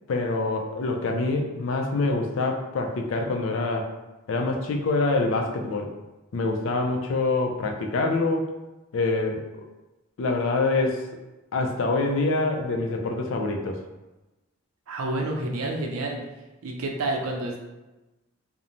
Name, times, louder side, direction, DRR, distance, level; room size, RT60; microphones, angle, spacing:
voice 1, 0.1-3.9 4.3-5.9 6.3-8.5 8.9-9.6 10.2-11.1 11.5-13.8, left 3 dB, 65° left, 2 dB, 0.4 m, -25 dB
voice 2, 14.9-16.2 16.6-17.6, right 2 dB, 85° right, 1 dB, 0.5 m, -29 dB
3.0 x 2.0 x 2.5 m, 1.1 s
head